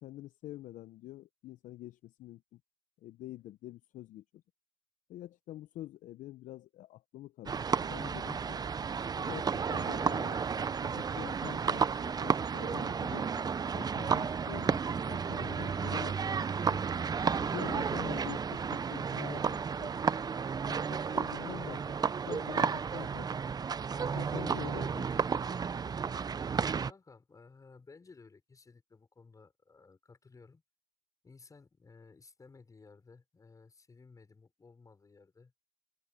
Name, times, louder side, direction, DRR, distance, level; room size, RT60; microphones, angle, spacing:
voice 1, 0.0-2.6 3.0-4.4 5.1-8.6 9.1-10.4 10.8-13.4 13.7-16.8 17.4-20.0 20.7-23.4 24.1-25.1, left 14 dB, 45° left, 1.0 m, -46 dB
sound 1, 7.5-26.9, right 6 dB, 20° right, 0.9 m, -32 dB
voice 2, 26.8-30.6 31.2-35.6, left 4 dB, 20° left, 6.5 m, -57 dB
hypercardioid pair, 90°, 18 cm